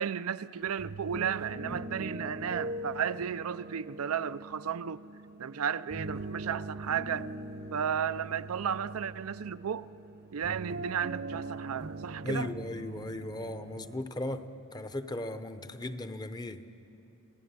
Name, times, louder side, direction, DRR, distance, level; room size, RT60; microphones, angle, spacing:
voice 1, 0.0-5.0 5.4-7.3 7.7-9.9 10.3-12.5, right 8 dB, 85° right, 0.5 m, -33 dB
sound 1, 0.7-14.0, right 2 dB, 50° right, 0.8 m, -42 dB
voice 2, 12.2-16.6, left 1 dB, 20° left, 0.8 m, -37 dB
27.5 x 17.0 x 9.6 m
head